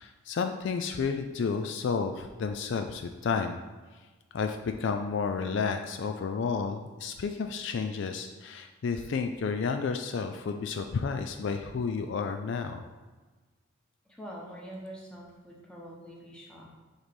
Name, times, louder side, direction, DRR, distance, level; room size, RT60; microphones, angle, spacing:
voice 1, 0.0-3.6 4.3-12.8, left 5 dB, 55° left, 6 dB, 0.3 m, -31 dB
voice 2, 14.1-16.7, equal, 5° left, -3 dB, 1.1 m, -45 dB
6.4 x 3.2 x 5.2 m, 1.3 s
head